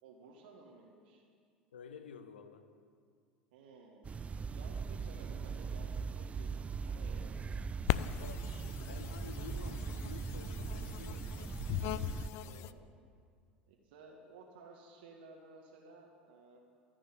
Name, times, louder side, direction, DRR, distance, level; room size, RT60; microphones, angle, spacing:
voice 1, 0.0-1.2 3.5-4.0 4.5-7.7 12.4-12.8 13.7-16.7, right 3 dB, 70° right, 0 dB, 1.7 m, -56 dB
voice 2, 1.7-2.7 8.1-11.9, left 6 dB, 80° left, 9 dB, 0.9 m, -51 dB
sound 1, 4.0-12.3, right 5 dB, 25° right, 0.4 m, -40 dB
sound 2, 7.9-12.7, left 13 dB, 55° left, 0.5 m, -39 dB
14.5 x 6.2 x 10.0 m, 2.1 s
hypercardioid pair, 80°, 6 cm